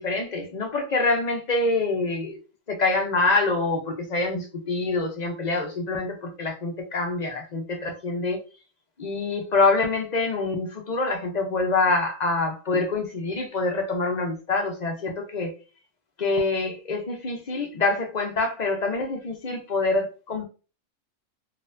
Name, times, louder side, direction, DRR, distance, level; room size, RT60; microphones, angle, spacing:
voice 1, 0.0-2.4 2.7-8.4 9.0-15.5 16.2-20.4, left 3 dB, 45° left, 0.6 m, -25 dB
4.2 x 2.4 x 2.5 m
omnidirectional pair, 1.3 m